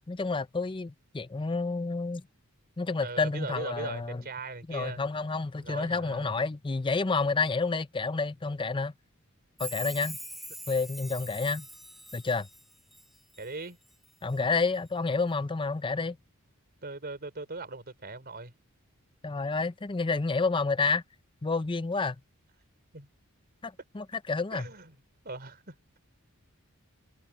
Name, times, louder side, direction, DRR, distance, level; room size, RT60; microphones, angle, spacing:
voice 1, 0.1-2.2 2.8-4.2 4.7-8.9 9.6-10.2 10.7-11.7 12.1-12.5 14.2-16.2 19.2-21.0 21.4-22.2 23.6-24.7, left 4 dB, 20° left, 0.5 m, -29 dB
voice 2, 3.0-5.0 5.6-6.3 13.4-13.8 16.8-18.5 22.9-23.1 24.5-25.0 25.2-26.0, right 3 dB, 45° right, 4.0 m, -40 dB
Chime, 9.6-13.5 13.9-14.4 14.7-14.8, equal, ahead, 4.6 m, -43 dB
head